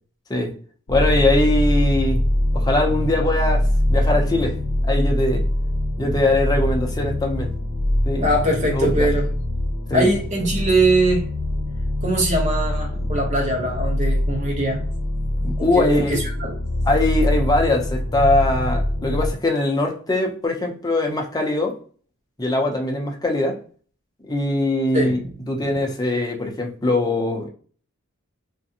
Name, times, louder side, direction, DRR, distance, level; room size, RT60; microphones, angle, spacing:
sound 1, 0.9-19.3, left 1 dB, 75° left, 0.7 m, -23 dB
voice 1, 0.9-2.2 2.5-4.6 4.8-5.4 6.0-7.5 8.1-8.3 8.8-9.1 9.9-10.1 15.4-16.2 16.9-21.7 22.4-23.6 24.2-25.2 25.5-27.5, left 2 dB, 20° left, 1 dB, 0.6 m, -21 dB
voice 2, 8.2-9.3 9.9-11.3 12.0-14.8 15.4-16.6 24.9-25.3 25.7-25.8, right 1 dB, 35° right, -1 dB, 0.9 m, -22 dB
2.5 x 2.1 x 2.7 m, 0.44 s
head